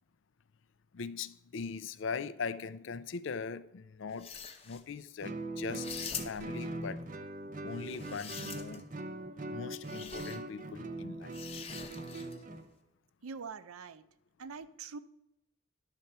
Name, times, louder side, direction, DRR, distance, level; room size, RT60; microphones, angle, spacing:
voice 1, 0.9-4.3 4.6-6.0 6.2-7.0 7.6-8.9 9.5-11.4, left 5 dB, 65° left, 0.4 m, -40 dB
sound 1, 4.1-4.8 5.7-6.6 7.8-8.9 9.8-10.4 11.3-12.4, left 7 dB, 25° left, 0.8 m, -44 dB
Guitar, 5.2-12.7, right 2 dB, 40° right, 0.7 m, -41 dB
voice 2, 13.2-14.0 14.4-15.0, right 5 dB, 90° right, 0.6 m, -44 dB
11.5 x 4.5 x 6.7 m
head